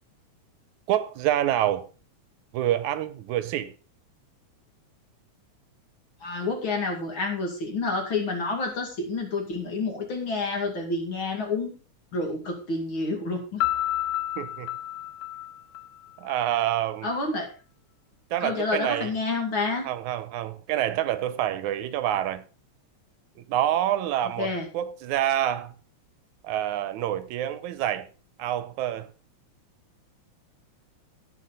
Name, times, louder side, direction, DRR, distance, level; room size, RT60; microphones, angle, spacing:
voice 1, 0.9-1.8 2.5-3.7 14.4-14.7 16.2-17.1 18.3-19.2 19.8-22.4 23.4-25.7 26.4-28.1 28.4-29.1, right 12 dB, 80° right, 2.2 m, -27 dB
voice 2, 6.2-11.7 12.1-13.6 17.0-17.5 18.4-19.8 24.4-24.7, left 3 dB, 45° left, 2.9 m, -29 dB
Piano, 13.6-16.4, left 14 dB, 80° left, 2.1 m, -30 dB
17.0 x 6.0 x 4.1 m
omnidirectional pair, 3.4 m